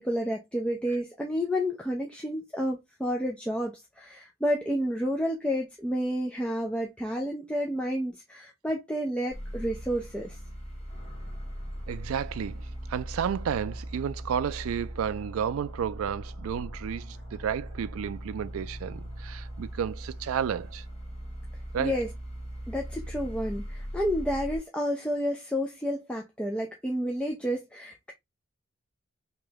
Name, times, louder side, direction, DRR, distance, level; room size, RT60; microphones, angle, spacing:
voice 1, 0.0-10.4 21.8-22.1 22.7-28.1, equal, 5° left, 0.5 m, -30 dB
sound 1, 9.3-24.6, equal, 30° left, 1.1 m, -39 dB
voice 2, 11.9-20.8 21.7-22.0, right 8 dB, 90° right, 0.3 m, -32 dB
3.1 x 2.9 x 3.4 m
head